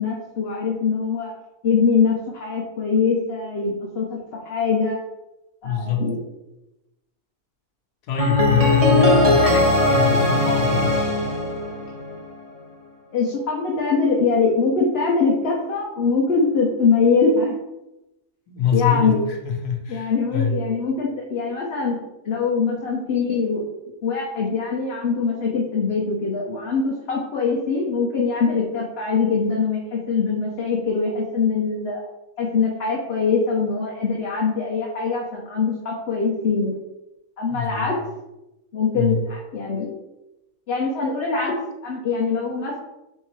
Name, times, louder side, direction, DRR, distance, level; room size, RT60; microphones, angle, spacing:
voice 1, 0.0-1.3 1.6-5.0 5.6-6.2 13.1-17.6 18.7-19.2 19.9-22.0 22.2-23.6 24.0-32.0 32.4-36.7 37.4-38.0 38.7-39.9 40.7-41.5 41.8-42.8, left 5 dB, 55° left, -3 dB, 0.7 m, -22 dB
voice 2, 5.6-6.0 8.1-11.0 18.5-20.5 37.5-37.9 38.9-39.2, left 7 dB, 75° left, 2 dB, 1.3 m, -24 dB
sound 1, 8.2-12.3, left 1 dB, 45° right, 0.5 m, -19 dB
4.4 x 3.7 x 3.1 m, 0.95 s
omnidirectional pair, 1.7 m